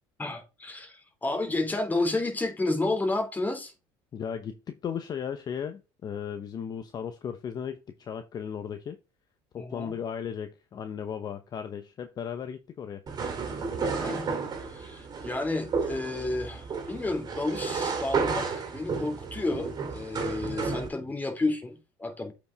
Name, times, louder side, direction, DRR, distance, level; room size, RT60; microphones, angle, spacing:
voice 1, 0.2-3.7 9.5-9.9 13.9-22.3, left 2 dB, 15° left, 3.1 m, -31 dB
voice 2, 4.1-9.0 9.5-13.0, left 7 dB, 40° left, 0.9 m, -36 dB
sound 1, 13.1-20.9, right 5 dB, 35° right, 2.9 m, -32 dB
8.1 x 5.3 x 3.5 m
supercardioid pair, 105°, 11 cm